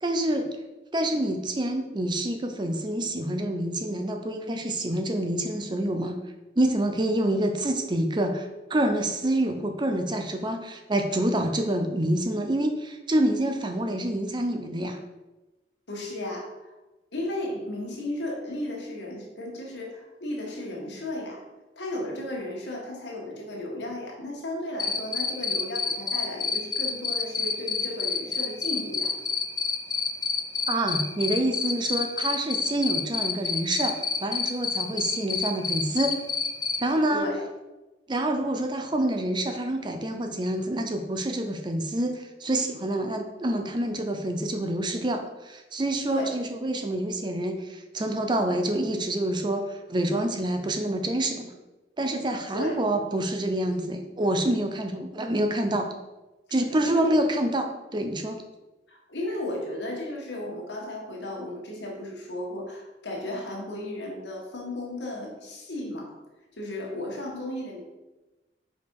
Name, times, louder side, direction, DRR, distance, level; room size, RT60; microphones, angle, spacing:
voice 1, 0.0-0.5 0.9-6.2 6.6-15.0 30.7-36.2 36.8-37.3 38.1-51.5 52.0-55.9 56.5-58.4, right 1 dB, 25° right, 5 dB, 0.6 m, -27 dB
voice 2, 15.9-16.7 17.1-21.4 21.8-29.1 37.1-37.4 46.1-46.3 52.5-52.8 56.8-57.1 58.9-66.1 66.6-67.8, left 1 dB, 85° left, -1 dB, 1.6 m, -34 dB
Cricket, 24.8-36.8, left 5 dB, 25° left, 0.6 m, -27 dB
5.2 x 4.9 x 4.7 m, 1.1 s
head